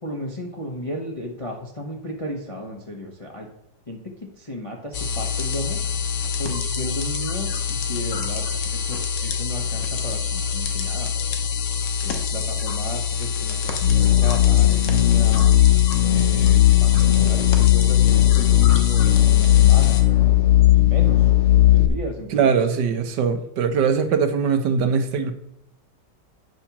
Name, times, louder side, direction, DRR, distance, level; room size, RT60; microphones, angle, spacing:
voice 1, 0.0-3.5 3.9-4.0 4.4-5.8 6.4-8.4 8.7-11.5 12.0-15.5 16.0-20.0 20.7-21.2 21.5-22.6, left 1 dB, 25° left, 0 dB, 0.9 m, -34 dB
sound 1, 4.9-20.0, left 6 dB, 85° left, 1.7 m, -26 dB
sound 2, 13.8-21.9, left 14 dB, 50° left, 1.0 m, -16 dB
voice 2, 22.3-25.3, right 6 dB, 75° right, 8 dB, 1.5 m, -21 dB
9.0 x 4.3 x 5.9 m, 0.82 s
omnidirectional pair, 1.9 m